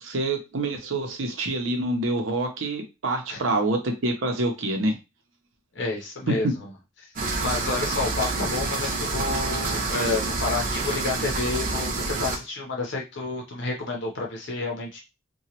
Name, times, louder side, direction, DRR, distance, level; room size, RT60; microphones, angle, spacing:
voice 1, 0.0-4.9 6.3-6.4, right 2 dB, 80° right, 4 dB, 0.7 m, -26 dB
voice 2, 5.7-6.7 7.2-15.0, left 3 dB, 60° left, 0 dB, 0.7 m, -30 dB
sound 1, 7.2-12.4, right 3 dB, 45° right, 0.6 m, -28 dB
2.9 x 2.3 x 2.9 m, 0.25 s
head